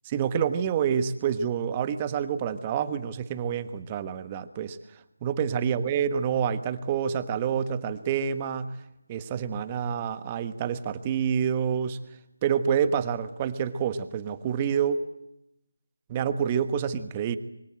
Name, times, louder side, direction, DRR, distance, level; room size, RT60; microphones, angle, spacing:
voice 1, 0.1-4.8 5.2-8.7 9.1-12.0 12.4-15.0 16.1-17.4, right 8 dB, 20° right, 12 dB, 1.3 m, -27 dB
25.5 x 24.0 x 7.8 m, 0.84 s
figure-of-eight pair, 165°, 0 cm